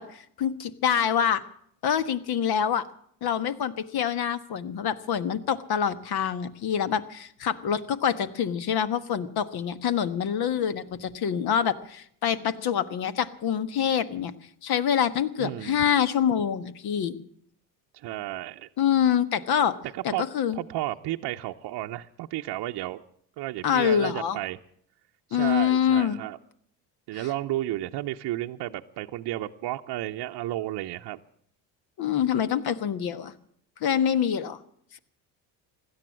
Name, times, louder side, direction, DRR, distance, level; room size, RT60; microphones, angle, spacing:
voice 1, 0.0-1.4 1.8-2.8 3.2-14.3 14.6-17.1 18.8-19.8 20.0-20.6 23.6-24.4 25.3-26.2 27.1-27.3 32.0-33.3 33.8-34.6 34.9-35.0, left 8 dB, 55° left, 13 dB, 1.4 m, -26 dB
voice 2, 15.4-15.8 17.9-18.7 19.9-20.3 20.5-23.0 23.4-24.6 25.3-26.4 27.1-31.2, right 15 dB, 60° right, 3 dB, 0.8 m, -32 dB
16.5 x 11.5 x 7.5 m, 0.65 s
supercardioid pair, 75°, 45 cm